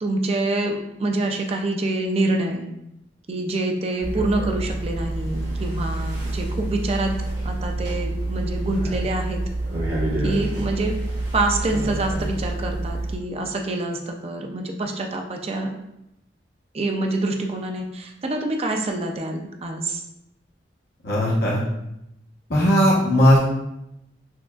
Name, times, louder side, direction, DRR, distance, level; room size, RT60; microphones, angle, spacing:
voice 1, 0.0-2.7 3.3-7.1 7.4-9.4 10.2-10.9 11.3-15.7 16.7-20.0, right 2 dB, 35° right, 3 dB, 0.4 m, -26 dB
sound 1, 4.0-13.2, right 2 dB, 65° right, 1.2 m, -27 dB
voice 2, 21.0-21.6 22.5-23.4, equal, 60° left, -5 dB, 0.9 m, -17 dB
6.1 x 2.3 x 2.3 m, 0.85 s
head